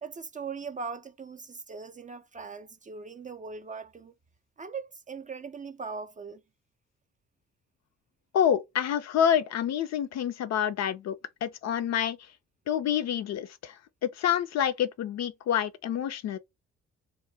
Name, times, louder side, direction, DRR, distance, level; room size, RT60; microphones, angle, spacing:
voice 1, 0.0-4.1 4.6-6.4, right 5 dB, 25° right, 0.4 m, -40 dB
voice 2, 8.3-11.2 11.4-12.2 12.7-16.4, left 9 dB, 55° left, 0.5 m, -27 dB
2.9 x 2.1 x 3.3 m
hypercardioid pair, 45°, 33 cm